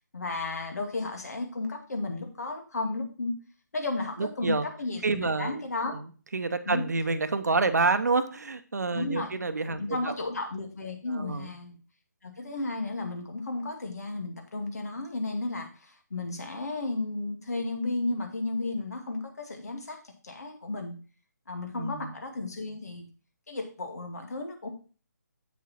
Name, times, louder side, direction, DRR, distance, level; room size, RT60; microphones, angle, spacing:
voice 1, 0.1-3.3 3.7-6.0 6.7-6.8 8.9-9.3 9.8-11.8 12.2-20.0 20.2-21.0 21.5-23.1 23.5-24.7, left 2 dB, 60° left, 4 dB, 2.2 m, -33 dB
voice 2, 4.2-4.7 5.0-5.6 5.9-10.1 11.1-11.5 21.8-22.1, right 3 dB, 65° right, 10 dB, 0.9 m, -28 dB
8.1 x 6.4 x 4.2 m, 0.37 s
figure-of-eight pair, 145°, 10 cm